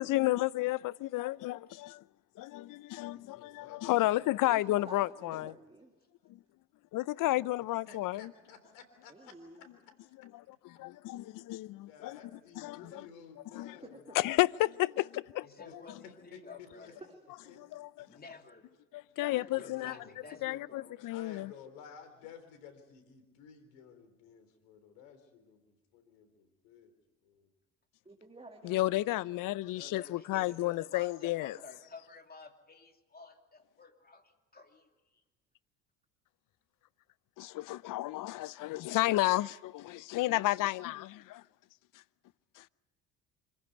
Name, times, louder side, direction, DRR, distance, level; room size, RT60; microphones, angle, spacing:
voice 1, 0.0-2.0 2.4-5.5 6.3-6.4 6.9-8.3 10.3-13.0 13.5-13.8 14.1-15.5 17.6-18.1 18.9-19.9 20.4-21.5 28.6-31.6 37.4-41.4 41.9-42.0 42.6-42.7, left 17 dB, 55° left, 0.7 m, -32 dB
voice 2, 3.0-5.5 7.9-9.3 9.6-9.7 11.8-14.1 15.6-15.7 16.0-16.9 17.5-17.6 18.0-18.2 19.5-20.2 21.1-26.9 27.2-27.5, left 7 dB, 80° left, 3.7 m, -54 dB
voice 3, 4.5-5.9 9.1-9.6 13.8-14.2 16.8-17.6 28.0-28.9, right 2 dB, 15° right, 2.6 m, -52 dB
voice 4, 15.4-17.0 18.1-18.7 19.2-21.0 28.9-29.2 29.7-35.2, left 4 dB, 25° left, 2.9 m, -52 dB
26.0 x 15.0 x 9.5 m
hypercardioid pair, 65°, 38 cm